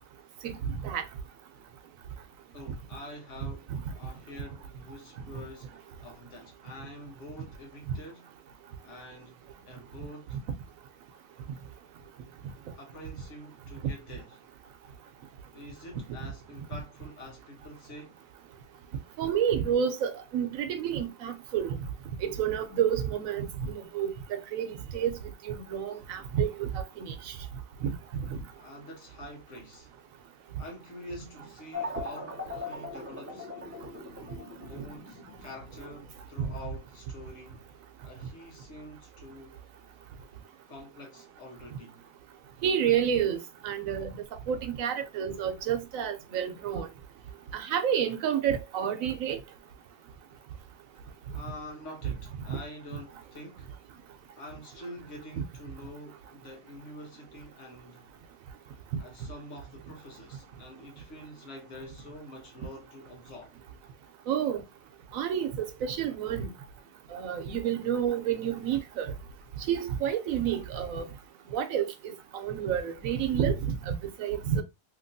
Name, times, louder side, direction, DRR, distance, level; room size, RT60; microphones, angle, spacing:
voice 1, 2.1-8.4 8.8-10.4 12.7-14.4 15.5-18.3 28.5-29.9 30.6-33.5 34.7-37.7 38.0-39.6 40.7-42.0 51.3-53.7 54.4-58.1 59.0-63.5, left 1 dB, 65° left, 1.3 m, -46 dB
voice 2, 19.2-21.8 22.2-24.7 24.9-25.2 25.4-27.3 27.8-27.9 28.3-28.4 42.6-43.4 43.6-44.1 44.5-46.9 47.5-49.4 52.5-52.6 64.3-64.6 65.1-66.5 67.1-69.1 69.7-71.1 71.5-73.9 74.2-74.6, right 9 dB, 90° right, 1.1 m, -29 dB
sound 1, 31.7-40.2, left 3 dB, 15° right, 0.6 m, -41 dB
2.9 x 2.9 x 2.6 m
omnidirectional pair, 1.4 m